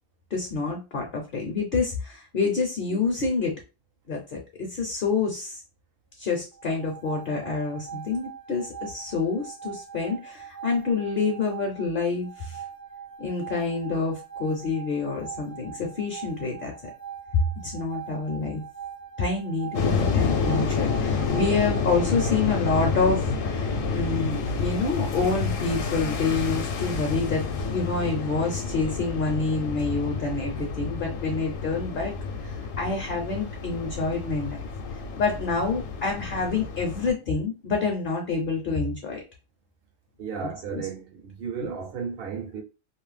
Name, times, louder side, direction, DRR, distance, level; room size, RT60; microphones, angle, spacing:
voice 1, 0.3-3.5 4.1-5.6 6.2-12.6 13.2-16.9 17.6-18.6 19.2-32.1 32.4-34.6 35.2-39.2 40.7-40.8 41.6-41.7, left 4 dB, 55° left, 0.6 m, -27 dB
sound 1, 6.5-22.3, right 8 dB, 75° right, 0.9 m, -42 dB
sound 2, 19.7-37.1, left 4 dB, 75° left, 1.0 m, -29 dB
voice 2, 40.2-42.6, right 6 dB, 60° right, 0.6 m, -34 dB
2.5 x 2.0 x 3.2 m
omnidirectional pair, 1.3 m